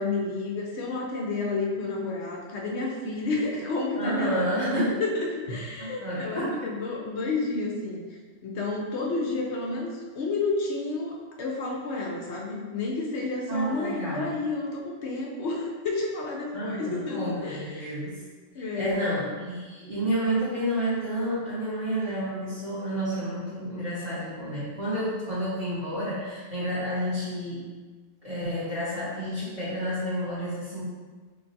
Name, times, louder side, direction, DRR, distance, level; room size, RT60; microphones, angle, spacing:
voice 1, 0.0-8.1 8.4-17.9 18.5-19.1, left 3 dB, 70° left, -1 dB, 1.0 m, -30 dB
voice 2, 3.9-5.0 5.8-6.6 13.5-14.3 16.5-18.2 18.6-27.7 28.2-30.8, equal, 35° right, -12 dB, 1.2 m, -30 dB
3.1 x 2.3 x 3.9 m, 1.4 s
omnidirectional pair, 1.2 m